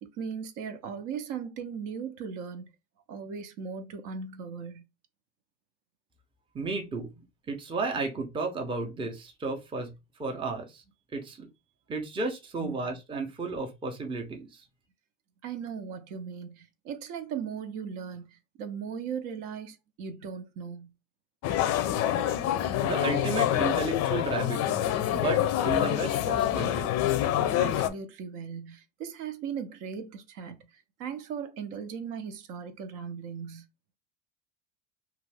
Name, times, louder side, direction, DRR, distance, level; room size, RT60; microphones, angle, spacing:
voice 1, 0.0-2.7 3.1-4.8 12.6-12.8 15.4-20.9 27.5-33.6, right 6 dB, 60° right, 0.7 m, -38 dB
voice 2, 6.5-10.8 11.1-11.5 11.9-14.7 22.8-24.8 25.1-26.9, right 3 dB, 15° right, 0.6 m, -33 dB
sound 1, 21.4-27.9, left 12 dB, 45° left, 0.5 m, -26 dB
2.5 x 2.4 x 3.3 m
supercardioid pair, 115°, 37 cm